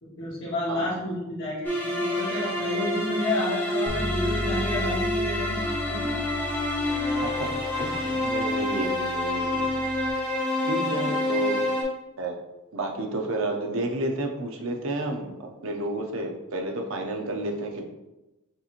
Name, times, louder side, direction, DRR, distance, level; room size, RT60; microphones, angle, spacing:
voice 1, 0.0-5.6 5.9-6.1 10.6-11.4, left 1 dB, 55° left, -8 dB, 1.0 m, -31 dB
voice 2, 0.7-1.0 7.1-7.4 7.8-9.7 10.6-11.6 12.2-12.3 12.7-17.9, right 1 dB, 60° right, 2 dB, 0.7 m, -31 dB
sound 1, 1.6-11.8, left 1 dB, 10° left, 1.1 m, -28 dB
Bass guitar, 3.9-10.1, equal, 30° left, 1.1 m, -36 dB
6.4 x 2.9 x 2.5 m, 1.0 s
head